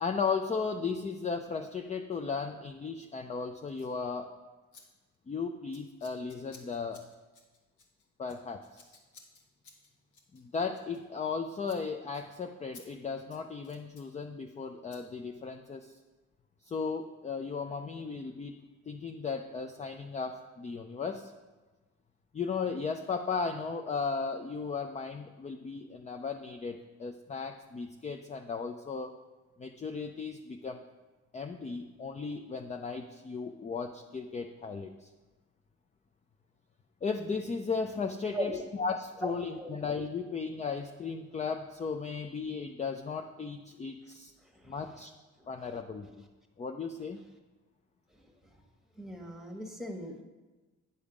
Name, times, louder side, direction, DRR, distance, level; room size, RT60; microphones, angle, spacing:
voice 1, 0.0-4.3 5.3-7.0 8.2-8.9 10.3-16.0 16.6-18.6 18.9-21.3 22.3-29.2 29.6-30.8 31.3-35.1 37.0-44.3 44.6-45.1 45.5-46.2 46.6-47.2, left 5 dB, 25° left, 5 dB, 0.4 m, -36 dB
Scissors, 3.7-4.0 4.7-4.8 5.1-5.4 5.7-11.4 11.6-11.8 12.1-12.2 12.7-12.8 13.2-14.1 14.9-15.0, left 4 dB, 85° left, 1.5 m, -57 dB
voice 2, 49.0-50.2, equal, ahead, 3 dB, 1.3 m, -38 dB
9.5 x 5.5 x 5.0 m, 1.2 s
cardioid pair, 90°, 30 cm